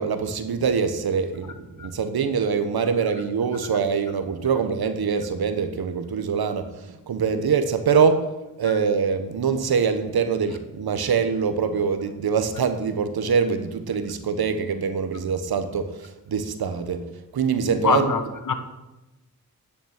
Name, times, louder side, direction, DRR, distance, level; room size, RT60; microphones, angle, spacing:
voice 1, 0.0-8.3 8.6-17.0 17.3-18.1, right 6 dB, 80° right, 9 dB, 1.3 m, -24 dB
voice 2, 17.8-18.5, left 5 dB, 60° left, 8 dB, 1.5 m, -24 dB
9.6 x 7.1 x 9.1 m, 1.0 s
cardioid pair, 55°, 37 cm